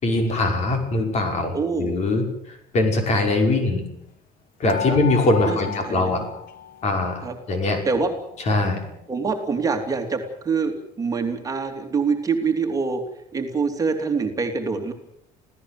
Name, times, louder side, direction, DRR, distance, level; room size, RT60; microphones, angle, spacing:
voice 1, 0.0-2.3 2.7-3.9 4.6-6.2 6.8-7.8 8.5-8.8, left 2 dB, 45° left, 4 dB, 5.9 m, -22 dB
voice 2, 1.5-1.9 4.9-5.0 5.5-5.6 5.8-6.3 7.2-7.4 7.8-8.1 9.1-13.0 13.3-14.9, right 4 dB, 20° right, 4 dB, 3.0 m, -25 dB
sound 1, 4.7-7.2 7.5-8.5 9.0-9.1 9.4-9.5, left 9 dB, 70° left, 1.7 m, -35 dB
27.5 x 16.5 x 7.8 m, 0.79 s
cardioid pair, 145°, 15 cm